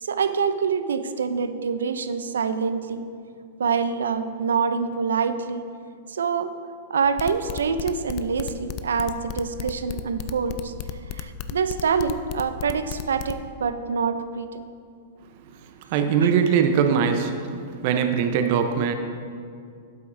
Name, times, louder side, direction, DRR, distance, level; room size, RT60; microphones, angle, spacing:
voice 1, 0.0-3.1 3.6-5.6 6.1-6.6 6.9-10.7 11.1-14.6 16.2-16.3, right 5 dB, 85° right, 11 dB, 0.5 m, -26 dB
sound 1, 7.0-13.3, left 11 dB, 45° left, 0.4 m, -33 dB
voice 2, 15.9-17.3 17.8-18.9, right 7 dB, 55° right, 7 dB, 0.7 m, -21 dB
11.5 x 8.2 x 2.7 m, 2.3 s
hypercardioid pair, 120°, 0 cm